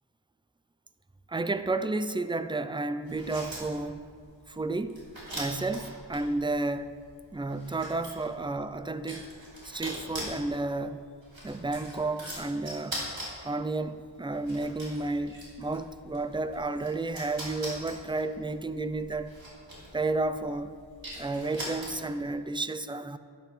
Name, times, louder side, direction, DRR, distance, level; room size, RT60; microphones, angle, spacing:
voice 1, 1.3-4.1 4.5-5.0 5.3-6.9 7.3-9.2 9.7-11.1 11.4-13.0 13.4-19.3 19.9-20.8 21.2-23.2, right 2 dB, 10° right, 10 dB, 0.4 m, -32 dB
sound 1, 3.0-22.2, right 1 dB, 85° right, 3.2 m, -43 dB
12.0 x 11.5 x 3.2 m, 2.2 s
wide cardioid pair, 45°, 46 cm